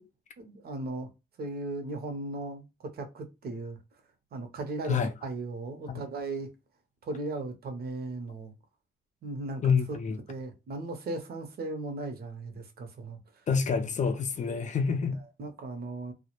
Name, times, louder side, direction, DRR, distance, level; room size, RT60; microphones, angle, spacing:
voice 1, 0.4-1.1 1.4-2.7 2.9-3.8 4.3-6.5 7.0-8.5 9.2-9.6 9.9-10.0 10.3-13.2 15.4-16.1, right 2 dB, 50° right, 0.7 m, -37 dB
voice 2, 9.6-10.2 13.5-15.2, left 5 dB, 40° left, 0.4 m, -27 dB
2.1 x 2.0 x 2.9 m
cardioid pair, 90°, 20 cm